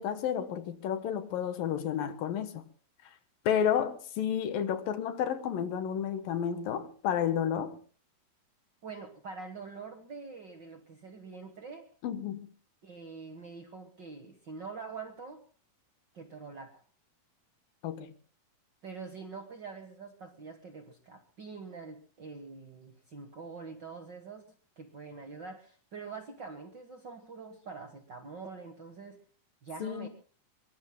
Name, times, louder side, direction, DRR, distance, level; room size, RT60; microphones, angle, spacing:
voice 1, 0.0-2.6 3.5-7.8 12.0-12.5 17.8-18.1 29.8-30.1, left 8 dB, 75° left, 2.8 m, -31 dB
voice 2, 8.8-11.9 12.8-15.4 16.1-16.8 18.8-29.2 29.6-30.1, right 4 dB, 55° right, 1.2 m, -45 dB
23.5 x 23.0 x 2.2 m
omnidirectional pair, 4.1 m